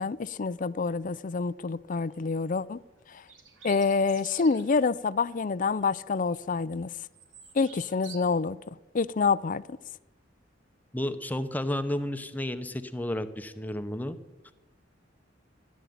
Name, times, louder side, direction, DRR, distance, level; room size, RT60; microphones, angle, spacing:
voice 1, 0.0-2.8 3.6-6.9 7.6-8.6 8.9-9.6, left 4 dB, 45° left, 0.5 m, -27 dB
sound 1, 2.1-2.4 3.2-4.8 5.2-5.4 5.8-6.5 6.8-8.2, right 6 dB, 85° right, 3.1 m, -49 dB
voice 2, 10.9-14.2, left 1 dB, 10° left, 0.9 m, -32 dB
14.5 x 10.5 x 9.5 m
head